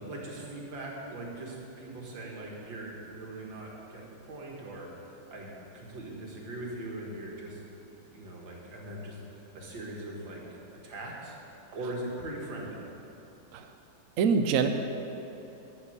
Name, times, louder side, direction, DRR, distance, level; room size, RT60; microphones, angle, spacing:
voice 1, 0.1-4.9 5.3-7.6 7.9-10.6 10.8-11.4 11.7-12.8, right 1 dB, 85° right, -2 dB, 2.5 m, -40 dB
voice 2, 14.2-14.7, right 6 dB, 60° right, 6 dB, 0.9 m, -24 dB
11.5 x 6.0 x 7.9 m, 2.9 s
omnidirectional pair, 2.0 m